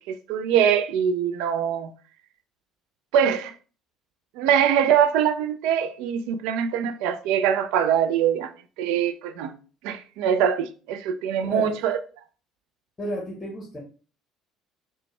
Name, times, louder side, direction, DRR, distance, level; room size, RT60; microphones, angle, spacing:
voice 1, 0.1-1.9 3.1-3.5 4.4-8.5 8.8-9.5 9.8-12.0, right 8 dB, 60° right, 0.4 m, -23 dB
voice 2, 11.4-11.8 13.0-13.8, left 1 dB, 25° left, 0.9 m, -32 dB
4.0 x 2.2 x 3.1 m
figure-of-eight pair, 55°, 0 cm